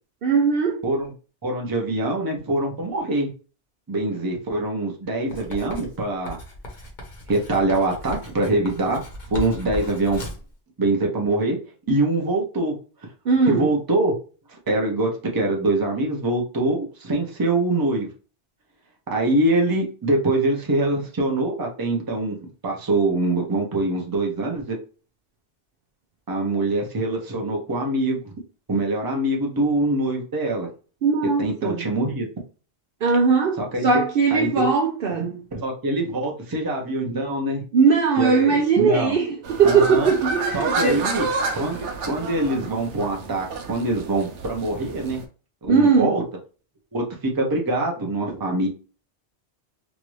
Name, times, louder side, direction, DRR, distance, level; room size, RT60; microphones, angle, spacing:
voice 1, 0.2-0.8 13.2-13.7 31.0-31.9 33.0-35.5 37.7-41.1 45.7-46.1, right 5 dB, 60° right, 0.7 m, -19 dB
voice 2, 1.4-3.3 3.9-6.4 7.3-9.0 9.3-10.2 10.8-11.6 11.9-12.7 13.5-14.1 14.7-18.1 19.1-24.8 26.3-28.3 28.7-30.7 31.4-32.3 33.6-34.0 34.3-34.7 35.5-37.6 38.2-39.2 39.6-40.1 40.5-41.3 41.5-45.2 45.6-46.2 46.9-47.0 47.3-48.7, right 2 dB, 25° right, 0.6 m, -24 dB
Writing, 5.3-10.5, equal, 45° left, 1.0 m, -36 dB
sound 1, 39.4-45.2, right 3 dB, 85° right, 1.0 m, -30 dB
3.0 x 2.5 x 3.1 m
omnidirectional pair, 1.2 m